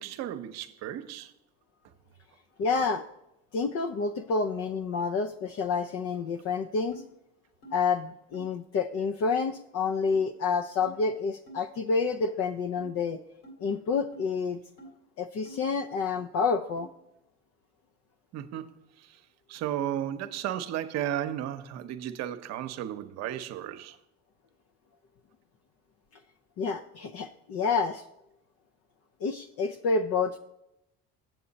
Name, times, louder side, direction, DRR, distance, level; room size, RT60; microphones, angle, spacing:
voice 1, 0.0-1.3 18.3-19.2 19.5-24.0, right 11 dB, 60° right, 0.8 m, -34 dB
voice 2, 2.6-3.0 3.5-7.0 7.7-13.2 13.6-14.6 15.2-16.9 26.6-28.0 29.2-30.4, left 4 dB, 50° left, 0.6 m, -28 dB
sound 1, 6.9-7.1 7.6-7.8 8.3-8.5 9.3-9.4 10.1-10.3 10.8-11.0 11.5-11.6 12.1-12.2 12.8-12.9 13.4-13.6 14.1-14.3 14.8-14.9 15.4-15.6 16.1-16.2 16.8-16.9, right 2 dB, 70° left, 3.0 m, -47 dB
7.9 x 7.6 x 4.0 m
supercardioid pair, 105°, 30 cm